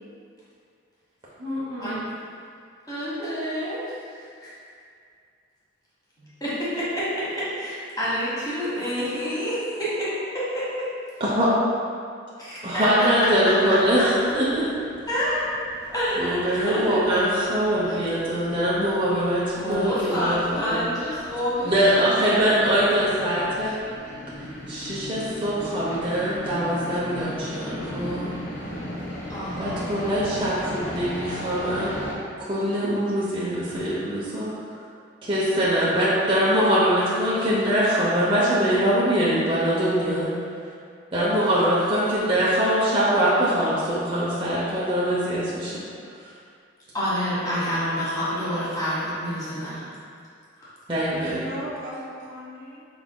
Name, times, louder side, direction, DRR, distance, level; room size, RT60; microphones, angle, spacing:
voice 1, 1.4-2.0 51.1-52.9, equal, 80° right, -7 dB, 1.0 m, -35 dB
voice 2, 2.9-4.5 6.2-10.9 12.4-12.9 15.1-15.5 15.9-17.0 19.6-22.7 29.3-30.0 46.9-49.9 50.6-50.7, equal, 20° left, -10 dB, 1.2 m, -28 dB
voice 3, 11.2-11.5 12.6-14.6 16.2-20.8 21.6-23.8 24.7-28.3 29.6-32.0 32.4-34.5 35.2-40.3 41.1-45.8 50.9-51.4, equal, 25° right, -9 dB, 0.6 m, -23 dB
sound 1, 13.0-32.1, equal, 65° left, 1.1 m, -38 dB
4.7 x 3.5 x 2.2 m, 2.3 s
head